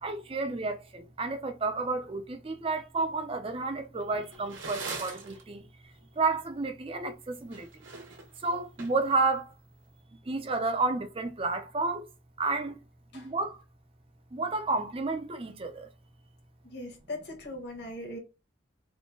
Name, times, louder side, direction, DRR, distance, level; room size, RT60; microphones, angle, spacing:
voice 1, 0.0-5.6 6.2-7.7 8.4-9.4 10.3-12.0 12.4-12.8 13.1-13.6 14.3-15.9, right 3 dB, 30° right, 0.5 m, -31 dB
sound 1, 4.0-5.4 7.4-9.2, right 4 dB, 65° right, 1.2 m, -41 dB
voice 2, 16.6-18.2, left 1 dB, 55° left, 1.5 m, -40 dB
3.7 x 2.2 x 3.7 m
head